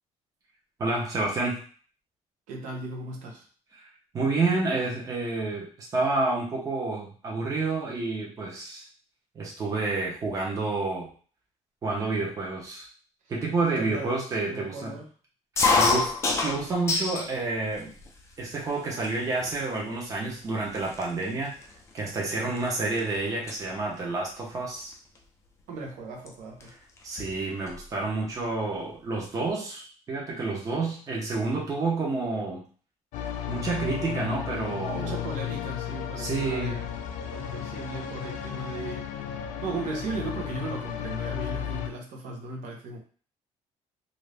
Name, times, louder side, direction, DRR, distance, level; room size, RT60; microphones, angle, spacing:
voice 1, 0.8-1.6 4.1-8.8 9.3-11.1 11.8-12.9 13.3-14.9 15.7-16.1 16.4-17.9 18.4-21.5 21.9-24.9 27.0-32.6 33.5-35.2 36.2-36.8, right 3 dB, 25° right, -3 dB, 0.8 m, -29 dB
voice 2, 2.5-3.5 13.8-15.1 25.7-26.7 34.9-36.8 37.3-43.0, right 3 dB, 85° right, 0 dB, 0.8 m, -37 dB
sound 1, 15.6-17.3 17.7-18.4 19.0-19.1 19.4-19.8 20.4-20.5 20.7-23.0 23.3-23.6 24.9-25.2 26.3-26.4 26.6-26.7 27.0-27.8, left 3 dB, 20° left, 0.4 m, -27 dB
sound 2, 33.1-41.9, left 9 dB, 90° left, 0.4 m, -34 dB
2.6 x 2.6 x 3.3 m, 0.42 s
cardioid pair, 175°, 13 cm